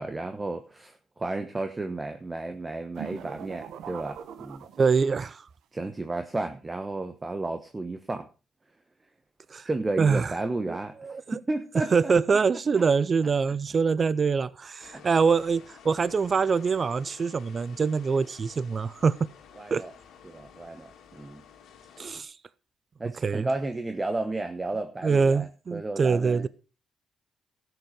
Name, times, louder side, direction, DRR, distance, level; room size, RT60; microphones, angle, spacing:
voice 1, 0.0-4.7 5.7-8.3 9.7-11.0 11.3-12.4 14.9-15.0 19.6-19.9 20.2-21.4 23.0-26.5, right 2 dB, 20° right, 1.1 m, -33 dB
sound 1, 2.9-5.3, right 9 dB, 75° right, 1.1 m, -41 dB
voice 2, 4.8-5.5 9.5-9.7 10.0-10.3 10.7-11.4 11.9-19.2 19.7-19.8 22.0-22.3 23.2-23.5 25.0-26.5, right 5 dB, 40° right, 0.5 m, -24 dB
sound 2, 14.8-22.2, left 8 dB, 75° left, 2.2 m, -52 dB
13.0 x 8.1 x 4.8 m
cardioid pair, 90°, 0 cm